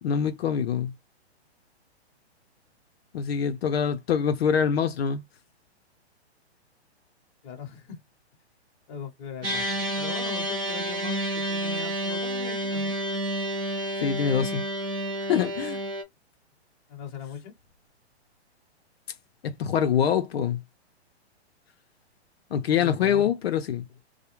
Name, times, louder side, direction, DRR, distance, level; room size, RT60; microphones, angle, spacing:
voice 1, 0.0-0.9 3.1-5.2 14.0-14.6 15.3-15.8 19.4-20.6 22.5-23.8, left 8 dB, 65° left, 0.6 m, -25 dB
voice 2, 7.4-8.0 8.9-12.9 16.9-17.5 22.8-23.3, left 5 dB, 25° left, 0.8 m, -40 dB
sound 1, 9.4-16.0, right 1 dB, 10° right, 0.3 m, -30 dB
2.3 x 2.1 x 2.9 m
hypercardioid pair, 155°, 34 cm